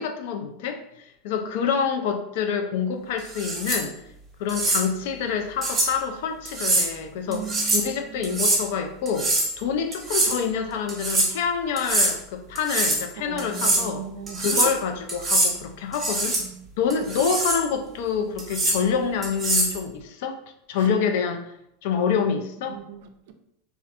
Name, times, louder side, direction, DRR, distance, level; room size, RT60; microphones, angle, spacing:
voice 1, 0.0-3.9 4.4-14.0 14.4-16.4 16.8-20.4 20.7-21.4 21.8-22.8, left 6 dB, 70° left, 0.3 m, -27 dB
sound 1, 3.3-3.8 4.5-4.8 5.6-5.9 6.5-6.9 7.3-7.9 8.2-8.6 9.1-9.5 9.9-10.4 10.9-11.3 11.8-12.1 12.6-13.0 13.4-13.8 14.3-14.8 15.1-15.5 15.9-16.4 16.9-17.6 18.4-18.8 19.2-19.8, right 2 dB, 20° right, 0.6 m, -23 dB
voice 2, 7.3-8.3 13.3-14.7 16.4-16.7 22.7-23.3, right 7 dB, 75° right, 0.3 m, -38 dB
2.3 x 2.1 x 2.6 m
supercardioid pair, 125°, 0 cm